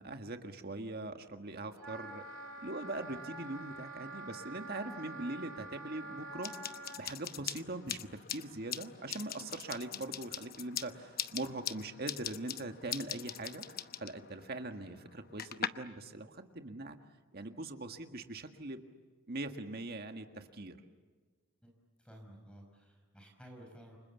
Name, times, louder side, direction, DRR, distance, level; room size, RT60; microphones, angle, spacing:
voice 1, 0.0-2.3 2.6-6.5 6.9-13.6 14.0-17.0 17.3-18.8 19.3-20.8, right 2 dB, 50° right, 6 dB, 1.7 m, -42 dB
Wind instrument woodwind instrument, 1.8-7.0, right 2 dB, 75° right, 2.3 m, -46 dB
sound 1, 6.4-15.7, left 10 dB, 45° left, 0.9 m, -42 dB
voice 2, 22.0-24.0, equal, 5° left, 2 dB, 4.9 m, -54 dB
29.5 x 26.0 x 7.2 m, 1.4 s
head